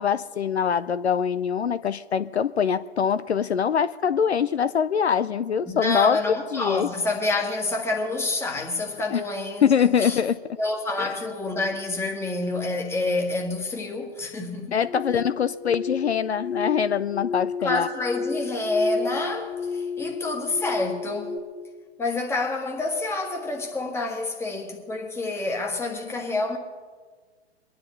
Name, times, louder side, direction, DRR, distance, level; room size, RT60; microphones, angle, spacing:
voice 1, 0.0-6.9 9.1-9.2 9.6-10.4 11.0-11.1 14.7-17.9, left 7 dB, 70° left, 0.6 m, -23 dB
voice 2, 5.7-10.2 10.6-14.7 17.6-21.4 22.0-26.6, left 2 dB, 5° left, 1.6 m, -28 dB
sound 1, 14.8-21.4, left 5 dB, 35° left, 1.6 m, -32 dB
24.5 x 10.5 x 4.0 m
figure-of-eight pair, 115°, 34 cm